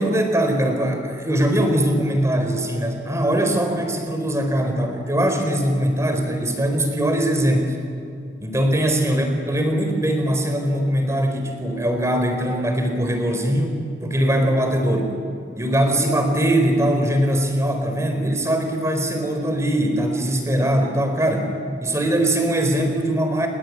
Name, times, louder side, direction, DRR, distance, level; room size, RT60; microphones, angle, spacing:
voice 1, 0.0-7.7 8.4-13.7 14.0-15.1 15.6-23.5, right 1 dB, 15° right, 5 dB, 4.3 m, -21 dB
29.0 x 20.5 x 8.8 m, 2.5 s
head